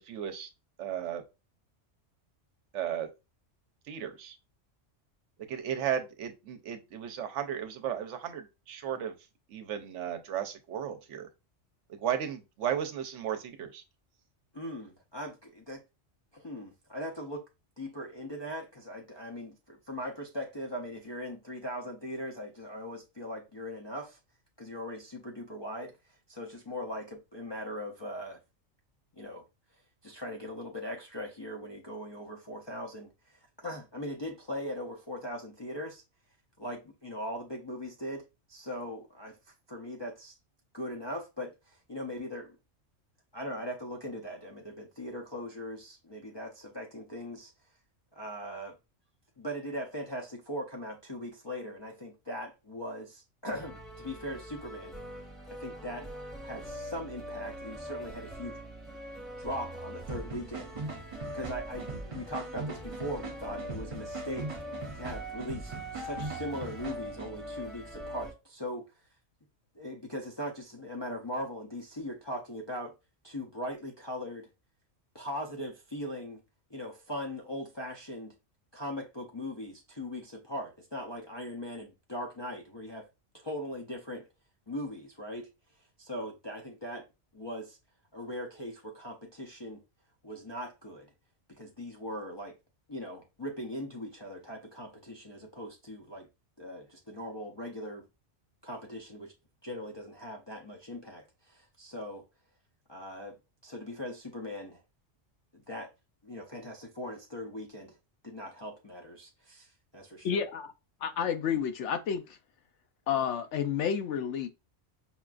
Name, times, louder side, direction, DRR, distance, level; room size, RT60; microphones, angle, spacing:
voice 1, 0.1-0.5 0.8-1.2 2.7-3.1 3.9-4.4 5.5-9.1 9.5-11.3 12.0-13.8, right 9 dB, 75° right, 0.9 m, -34 dB
voice 2, 14.5-15.8 16.3-17.4 17.8-24.2 24.6-28.4 29.1-29.5 30.0-36.0 36.6-40.3 40.7-42.6 43.3-47.5 48.1-48.8 49.4-54.9 55.5-56.1 56.4-58.6 59.4-64.6 64.9-68.9 69.8-72.9 73.2-74.5 75.1-76.4 76.7-78.3 78.7-83.1 83.3-84.3 84.7-85.5 86.0-87.1 87.3-87.8 88.1-89.8 90.2-91.1 91.5-92.6 92.9-96.3 96.6-98.1 98.6-99.3 99.6-102.2 102.9-103.4 103.6-104.8 105.5-105.9 106.2-108.0 108.2-110.4, equal, 40° left, 0.3 m, -40 dB
sound 1, 53.5-68.3, equal, ahead, 0.7 m, -43 dB
sound 2, 60.1-67.3, right 3 dB, 45° right, 0.4 m, -41 dB
voice 3, 110.2-110.7 111.0-112.4 113.1-114.5, left 8 dB, 75° left, 0.9 m, -30 dB
5.5 x 2.3 x 2.4 m
omnidirectional pair, 1.3 m